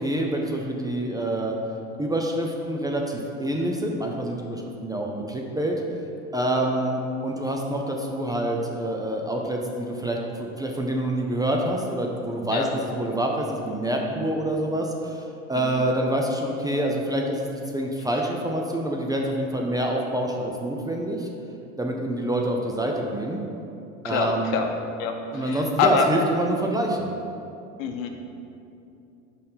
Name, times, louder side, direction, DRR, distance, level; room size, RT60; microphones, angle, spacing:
voice 1, 0.0-1.5 2.0-5.8 6.3-21.3 21.8-23.4 24.0-24.6 25.3-27.1, right 1 dB, 10° right, 0 dB, 0.5 m, -26 dB
voice 2, 24.0-24.7 25.0-26.1 27.8-28.1, left 6 dB, 70° left, 4 dB, 0.9 m, -26 dB
5.4 x 4.3 x 5.5 m, 2.7 s
hypercardioid pair, 85°, 41 cm